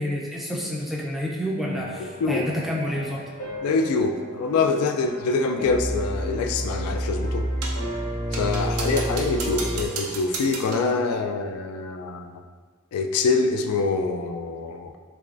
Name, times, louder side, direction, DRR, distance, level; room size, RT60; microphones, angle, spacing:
voice 1, 0.0-3.2, equal, ahead, -4 dB, 0.4 m, -29 dB
sound 1, 1.6-9.9, equal, 70° left, 1.0 m, -31 dB
voice 2, 3.6-7.5 8.3-12.4 12.9-15.0, left 4 dB, 90° left, 10 dB, 0.3 m, -25 dB
sound 2, 7.6-7.9 8.3-10.9, right 4 dB, 80° right, 0.5 m, -34 dB
3.4 x 3.1 x 2.5 m, 1.5 s
head